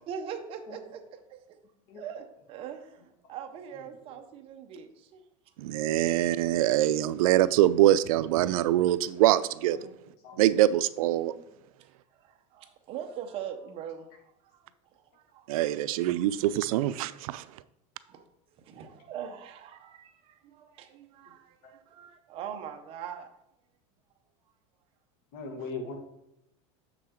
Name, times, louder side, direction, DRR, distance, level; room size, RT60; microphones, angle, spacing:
voice 1, 0.1-1.0 1.3-1.6 1.9-5.2 12.1-15.5 16.1-16.2 17.3-17.5 18.0-23.3, right 8 dB, 30° right, 6 dB, 0.8 m, -42 dB
voice 2, 5.6-9.8 10.4-11.3 15.5-17.4, right 13 dB, 85° right, 16 dB, 0.4 m, -24 dB
voice 3, 25.3-26.0, left 3 dB, 55° left, 4 dB, 1.5 m, -41 dB
6.6 x 6.0 x 4.3 m, 0.82 s
supercardioid pair, 165°, 18 cm